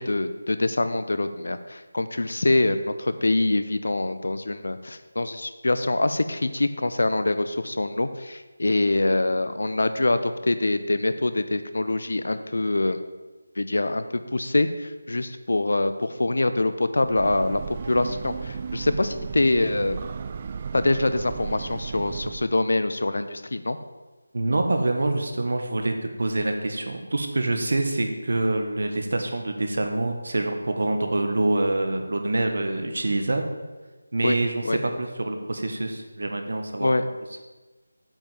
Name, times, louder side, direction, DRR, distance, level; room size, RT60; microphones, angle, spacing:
voice 1, 0.0-13.0 13.6-17.6 17.9-20.0 20.7-23.8 34.2-34.4 34.6-34.8 36.8-37.0, left 2 dB, 70° left, 11 dB, 0.8 m, -24 dB
Breathing / Train, 16.9-22.6, right 6 dB, 25° right, 0.3 m, -35 dB
voice 2, 24.3-33.5 34.1-37.0, right 2 dB, 65° right, 4 dB, 1.5 m, -26 dB
8.7 x 5.4 x 7.4 m, 1.2 s
figure-of-eight pair, 170°, 0 cm